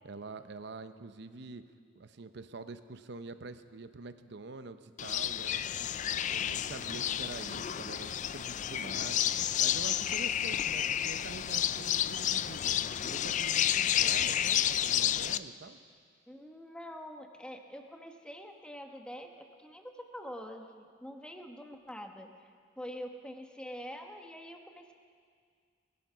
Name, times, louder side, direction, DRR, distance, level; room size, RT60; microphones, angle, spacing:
voice 1, 0.0-1.6 2.0-5.9 6.3-12.7 13.0-15.8, right 3 dB, 65° right, 11 dB, 0.7 m, -46 dB
sound 1, 5.0-15.4, left 10 dB, 40° left, 0.3 m, -31 dB
voice 2, 16.3-22.5 22.8-24.9, equal, 5° left, 4 dB, 1.0 m, -45 dB
20.0 x 11.0 x 5.6 m, 2.1 s
head